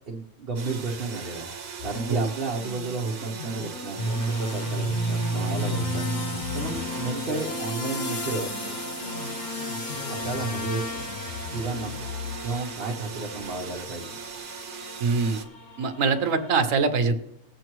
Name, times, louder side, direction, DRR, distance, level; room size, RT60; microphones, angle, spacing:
voice 1, 0.1-1.5 1.8-8.5 10.1-10.8 11.5-12.1 12.4-14.2, right 3 dB, 45° right, -2 dB, 1.0 m, -32 dB
sound 1, 0.6-15.5, right 5 dB, 85° right, 1.5 m, -39 dB
sound 2, 1.8-6.9 7.3-7.5 8.0-12.4, left 5 dB, 65° left, 1.2 m, -39 dB
sound 3, 4.0-16.5, equal, 45° left, 0.7 m, -33 dB
voice 2, 15.0-15.4 15.8-17.2, right 4 dB, 65° right, 8 dB, 1.2 m, -23 dB
21.0 x 7.7 x 3.1 m, 0.89 s
omnidirectional pair, 1.6 m